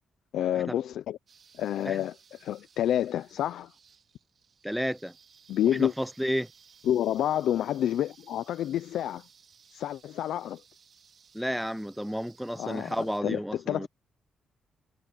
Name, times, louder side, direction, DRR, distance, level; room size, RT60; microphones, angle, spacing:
voice 1, 0.3-1.2 1.6-3.7 5.5-5.9 6.8-9.2 9.7-10.6 12.6-13.0 13.2-13.9, left 11 dB, 80° left, 0.6 m, -29 dB
sound 1, 1.3-13.2, right 6 dB, 45° right, 3.1 m, -59 dB
voice 2, 4.6-5.1 5.6-6.5 11.3-13.9, equal, ahead, 0.6 m, -31 dB
cardioid pair, 155°, 0 cm